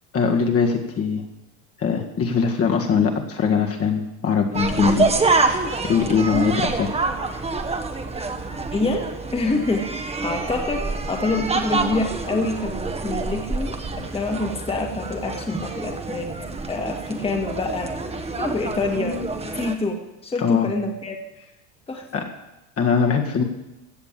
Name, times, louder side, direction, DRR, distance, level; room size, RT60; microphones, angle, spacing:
voice 1, 0.1-1.2 1.8-7.0 20.4-20.7 22.1-22.3 22.8-23.4, left 6 dB, 35° left, 2 dB, 1.8 m, -22 dB
sound 1, 4.5-19.8, right 3 dB, 15° right, 1.3 m, -26 dB
voice 2, 8.7-9.1 9.3-13.8 14.1-16.3 16.7-17.9 18.4-19.2 19.5-21.2 21.9-22.3, left 3 dB, 15° left, 2 dB, 1.7 m, -26 dB
16.0 x 6.9 x 7.4 m, 0.99 s
supercardioid pair, 110°, 41 cm